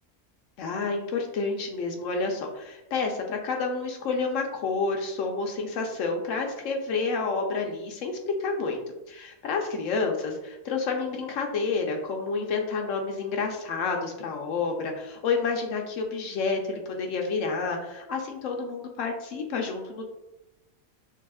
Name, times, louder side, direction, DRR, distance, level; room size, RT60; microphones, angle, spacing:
voice 1, 0.6-8.8 9.1-20.0, left 4 dB, 65° left, 2 dB, 1.0 m, -29 dB
6.2 x 2.4 x 2.3 m, 0.94 s
omnidirectional pair, 1.5 m